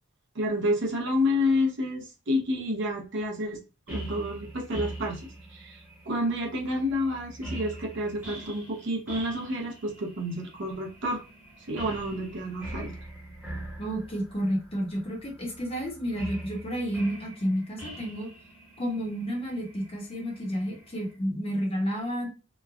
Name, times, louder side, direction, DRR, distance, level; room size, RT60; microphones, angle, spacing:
voice 1, 0.3-3.6 3.9-11.2 11.7-12.9, left 1 dB, 60° right, 0.7 m, -29 dB
sound 1, 3.9-21.2, right 1 dB, 10° right, 0.9 m, -43 dB
voice 2, 13.8-18.3 18.8-22.3, equal, 30° left, 0.7 m, -31 dB
3.0 x 2.2 x 2.4 m
head